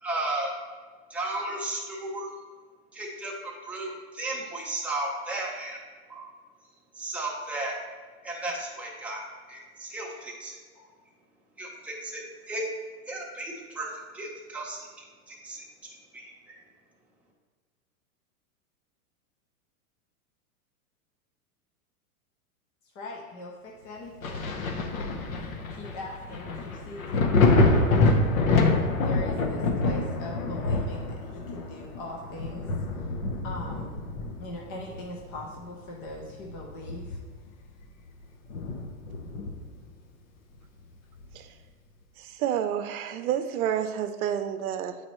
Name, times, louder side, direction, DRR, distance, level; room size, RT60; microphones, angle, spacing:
voice 1, 0.0-0.5 1.1-2.3 2.9-5.8 6.1-6.3 6.9-7.8 8.2-9.2 9.5-10.8 11.6-12.7 13.1-15.6 16.1-16.6, right 2 dB, 5° right, -4 dB, 0.8 m, -34 dB
voice 2, 22.9-28.3 29.0-32.7 33.4-34.1 34.4-37.2, left 1 dB, 25° left, -1 dB, 0.4 m, -41 dB
Thunder, 24.2-35.6 36.0-37.5 37.8-37.9 38.5-39.8 41.2-41.3, left 3 dB, 65° left, 0.9 m, -26 dB
voice 3, 42.2-45.0, right 9 dB, 70° right, 9 dB, 0.7 m, -29 dB
8.5 x 4.0 x 3.0 m, 1.5 s
supercardioid pair, 145°, 44 cm